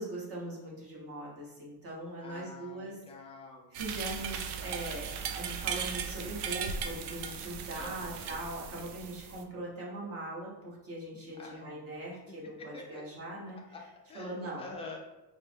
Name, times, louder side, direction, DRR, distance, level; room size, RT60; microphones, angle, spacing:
voice 1, 0.0-3.0 3.7-13.6 14.1-14.7, right 1 dB, 30° right, -4 dB, 1.0 m, -41 dB
voice 2, 2.2-3.7 7.7-8.4 11.4-12.1 12.7-13.0 13.7-13.8 14.1-15.0, left 2 dB, 15° left, 0 dB, 0.3 m, -47 dB
sound 1, 3.7-9.4, right 7 dB, 70° right, 0.5 m, -37 dB
4.3 x 2.1 x 3.3 m, 1.0 s
cardioid pair, 150°, 43 cm